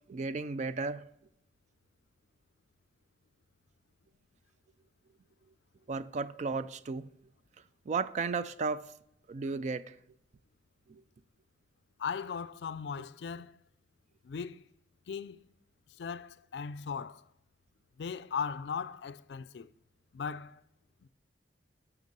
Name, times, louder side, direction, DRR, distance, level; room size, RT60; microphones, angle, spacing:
voice 1, 0.1-1.1 5.9-7.1 7.9-8.9 9.3-9.9 10.9-11.0, right 4 dB, 40° right, 0.3 m, -34 dB
voice 2, 12.0-13.6 14.2-14.6 15.1-15.4 16.0-17.3 18.0-19.7 20.1-20.6 21.0-21.1, left 6 dB, 65° left, 0.4 m, -38 dB
8.1 x 5.9 x 5.2 m
head